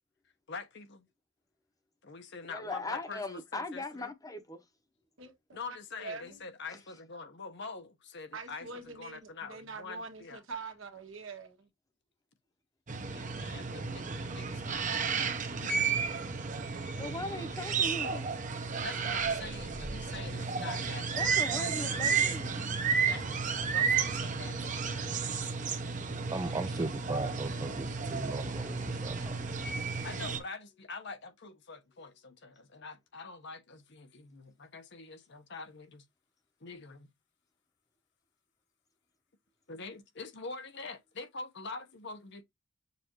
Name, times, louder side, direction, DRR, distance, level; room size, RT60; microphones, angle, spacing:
voice 1, 0.5-1.1 2.0-4.1 5.5-10.4 13.1-14.9 15.6-16.2 16.6-17.0 18.8-21.2 23.1-24.6 30.0-36.0 36.6-37.1 39.7-42.4, left 4 dB, 60° left, 1.0 m, -45 dB
voice 2, 2.5-4.6 17.0-18.3 21.1-22.6, left 2 dB, 20° left, 0.9 m, -39 dB
voice 3, 5.2-6.4 8.3-11.7 13.4-13.8, right 4 dB, 80° right, 1.4 m, -45 dB
sound 1, 12.9-30.4, right 5 dB, 40° right, 0.9 m, -32 dB
voice 4, 26.3-29.5, right 2 dB, 20° right, 0.4 m, -37 dB
6.8 x 2.6 x 3.0 m
head